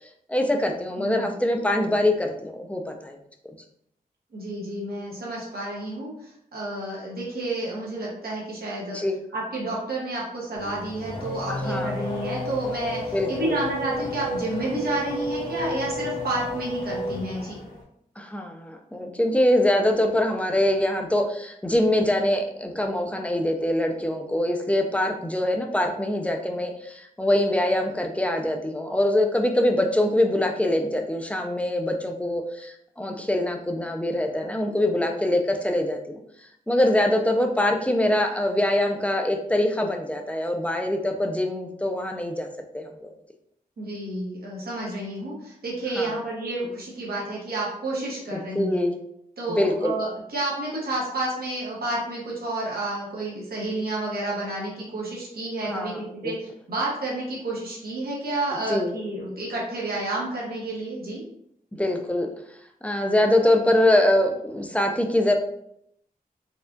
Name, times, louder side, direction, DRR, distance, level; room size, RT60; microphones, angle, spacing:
voice 1, 0.3-3.2 8.9-9.2 11.5-11.9 13.1-13.6 18.2-36.2 36.7-42.5 42.7-43.1 46.0-46.1 48.3-48.9 49.5-49.9 55.7-56.3 58.7-58.9 61.7-62.3 62.8-65.3, left 1 dB, 10° left, 3 dB, 0.4 m, -24 dB
voice 2, 1.0-1.3 4.3-9.0 9.3-17.6 43.8-48.8 49.4-61.2, right 2 dB, 90° right, -4 dB, 1.1 m, -30 dB
Race car auto racing / Accelerating revving vroom, 10.6-17.8, left 1 dB, 65° left, 1.5 m, -32 dB
4.3 x 2.3 x 2.5 m, 0.73 s
wide cardioid pair, 120°, 15 cm